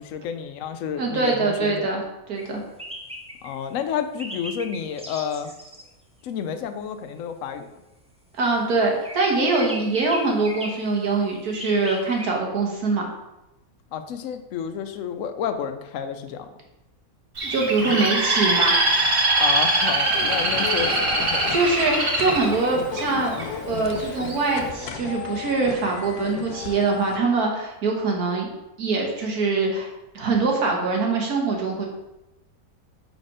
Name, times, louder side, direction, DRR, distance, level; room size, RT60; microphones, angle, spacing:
voice 1, 0.0-1.9 3.4-5.5 6.2-7.7 13.9-16.5 17.8-18.0 19.4-21.5, left 7 dB, 70° left, 9 dB, 0.9 m, -30 dB
voice 2, 1.0-2.0 2.3-2.6 8.4-13.1 17.4-18.7 21.5-23.4 23.7-28.5 28.8-29.9 30.1-31.9, right 3 dB, 85° right, 0 dB, 1.8 m, -23 dB
sound 1, 2.4-2.5 2.8-3.6 4.2-5.8 9.0-10.9 11.6-12.3, equal, 5° right, 0.5 m, -37 dB
Bird, 17.4-23.4 24.0-24.4, right 2 dB, 60° right, 1.7 m, -22 dB
sound 2, 20.1-27.2, left 6 dB, 85° left, 1.2 m, -35 dB
5.8 x 4.2 x 4.9 m, 0.95 s
omnidirectional pair, 1.6 m